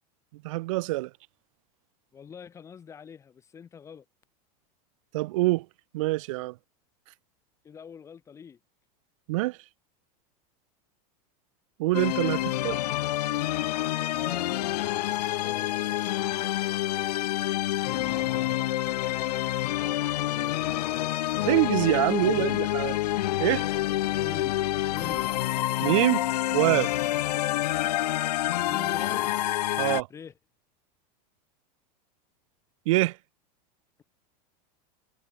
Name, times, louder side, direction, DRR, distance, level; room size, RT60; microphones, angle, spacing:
voice 1, 0.3-1.1 5.1-5.6 5.9-6.5 9.3-9.6 11.8-12.8 21.4-23.0 23.4-23.7 25.8-26.2 26.5-26.9 29.8-30.1 32.8-33.2, right 20 dB, 55° right, 1.6 m, -25 dB
voice 2, 2.1-4.0 7.6-8.6 12.1-13.0 14.1-14.8 15.3-16.4 17.8-18.7 20.2-21.9 22.2-22.7 24.2-24.6 24.9-25.3 27.3-27.7 28.6-29.3 30.1-30.3, left 7 dB, 15° left, 3.0 m, -45 dB
sound 1, 11.9-30.0, left 15 dB, 90° left, 2.5 m, -28 dB
supercardioid pair, 175°, 20 cm